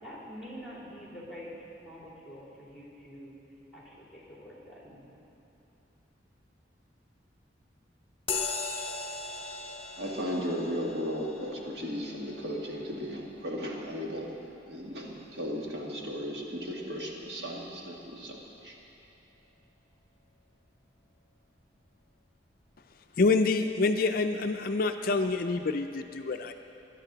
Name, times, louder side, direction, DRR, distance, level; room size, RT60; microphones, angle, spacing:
voice 1, 0.0-1.5 1.8-3.3 3.7-5.1, equal, ahead, -6 dB, 3.3 m, -46 dB
sound 1, 8.3-16.2, left 4 dB, 30° left, 0.9 m, -40 dB
voice 2, 10.0-14.3 14.7-18.4 18.6-18.7, equal, 60° right, -2 dB, 1.8 m, -35 dB
voice 3, 23.2-26.5, left 3 dB, 50° left, 6 dB, 0.4 m, -27 dB
21.0 x 11.0 x 3.9 m, 3.0 s
head